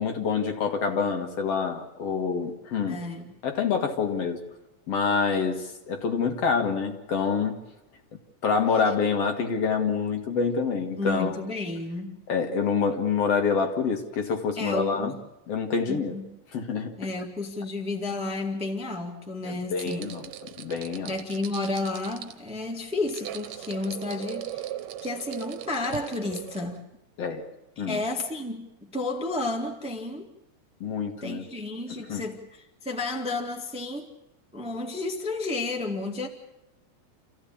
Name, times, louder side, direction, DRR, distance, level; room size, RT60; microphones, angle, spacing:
voice 1, 0.0-3.0 3.4-4.4 4.9-7.6 8.4-11.4 12.3-15.1 15.5-16.2 16.5-16.9 19.4-20.3 20.6-21.1 27.2-27.4 27.8-28.0 30.8-31.4 31.9-32.2, left 5 dB, 60° left, 4 dB, 2.7 m, -27 dB
voice 2, 2.9-3.3 11.0-12.2 14.6-15.1 15.9-16.2 17.0-20.1 21.0-24.7 25.0-26.9 27.8-30.3 31.2-34.1 34.5-36.3, left 2 dB, 5° right, 2 dB, 1.4 m, -32 dB
sound 1, 19.7-26.8, right 11 dB, 75° right, 2.1 m, -39 dB
27.5 x 15.5 x 8.7 m, 0.91 s
omnidirectional pair, 3.3 m